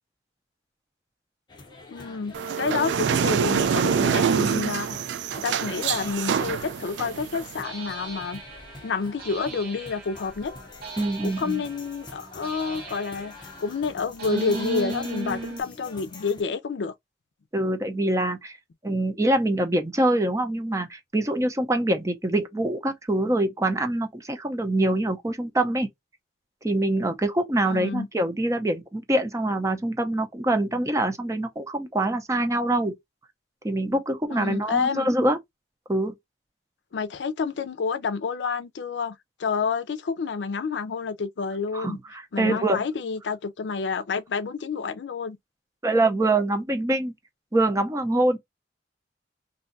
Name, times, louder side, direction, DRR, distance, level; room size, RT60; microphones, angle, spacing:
sound 1, 1.5-16.4, left 2 dB, 25° left, 0.7 m, -45 dB
voice 1, 1.9-4.9 5.4-8.4 8.8-10.5 11.2-16.9 27.6-28.1 34.3-35.1 36.9-42.0 42.3-45.4, left 5 dB, 90° left, 0.4 m, -29 dB
sound 2, 2.3-7.6, right 7 dB, 90° right, 0.3 m, -25 dB
sound 3, 7.6-15.6, right 2 dB, 60° right, 1.0 m, -37 dB
voice 2, 11.0-11.6 17.5-18.6 18.8-25.9 26.6-33.0 33.6-35.4 35.9-36.1 41.7-42.8 45.8-47.1 47.5-48.4, right 1 dB, 20° right, 0.6 m, -24 dB
2.7 x 2.3 x 3.8 m
head